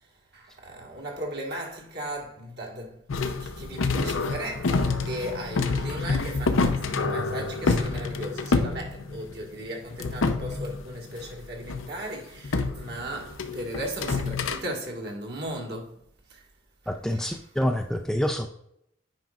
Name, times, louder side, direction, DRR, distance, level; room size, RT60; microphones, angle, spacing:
voice 1, 0.3-3.0 3.3-15.9 16.3-16.4 17.1-17.3, right 1 dB, 55° right, 1.6 m, -36 dB
sound 1, 3.1-9.6 9.9-11.3 11.7-11.9 12.4-14.6, left 3 dB, 80° left, 0.6 m, -27 dB
voice 2, 16.9-18.5, equal, 5° left, 0.3 m, -27 dB
9.1 x 5.2 x 2.4 m
head